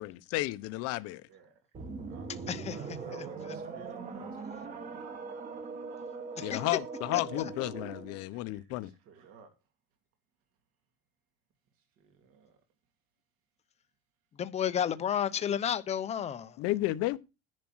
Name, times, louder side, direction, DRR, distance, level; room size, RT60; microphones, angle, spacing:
voice 1, 0.0-1.3 6.4-8.9 16.6-17.2, left 17 dB, 55° left, 0.9 m, -32 dB
voice 2, 1.3-1.6 2.1-5.0 8.3-9.6 12.0-12.6, right 5 dB, 50° right, 2.7 m, -56 dB
sound 1, 1.7-8.2, right 4 dB, 25° right, 1.8 m, -41 dB
voice 3, 2.5-2.8 6.4-6.6 7.1-7.2 14.4-16.6, left 9 dB, 20° left, 0.8 m, -31 dB
10.5 x 5.2 x 6.2 m
cardioid pair, 175°, 29 cm